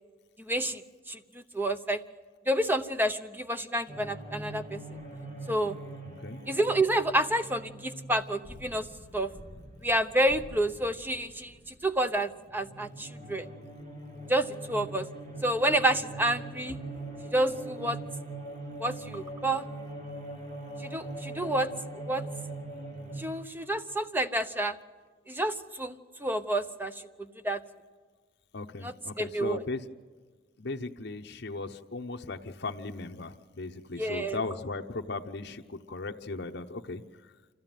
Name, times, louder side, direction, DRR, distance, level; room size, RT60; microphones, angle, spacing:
voice 1, 0.5-0.8 1.1-1.2 1.5-2.0 2.5-4.8 5.5-5.8 6.5-8.9 9.1-9.3 9.8-11.5 11.8-13.5 14.3-15.1 15.4-16.8 17.3-18.0 18.8-19.6 20.8-21.7 22.1-22.2 23.2-24.7 25.3-26.9 27.2-27.6 28.8-29.6 34.0-34.4, right 1 dB, 10° right, 9 dB, 0.8 m, -29 dB
sound 1, 3.9-12.0 12.3-23.2, right 2 dB, 40° right, 4.5 m, -42 dB
voice 2, 6.0-6.4 28.5-29.8 30.6-37.0, left 3 dB, 65° left, 4 dB, 0.9 m, -37 dB
26.0 x 15.0 x 9.1 m, 1.5 s
head